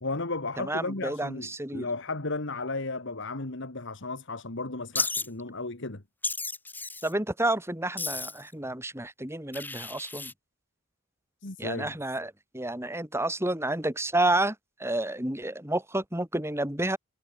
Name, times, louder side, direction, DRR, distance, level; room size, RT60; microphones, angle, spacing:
voice 1, 0.0-6.0 11.4-11.9, left 3 dB, 60° left, 2.1 m, -34 dB
voice 2, 0.6-1.9 7.0-10.3 11.6-17.0, right 1 dB, 10° right, 3.8 m, -30 dB
Wild animals, 4.9-5.3 6.2-7.1 8.0-8.5 9.5-10.3, left 3 dB, 10° left, 1.2 m, -33 dB
head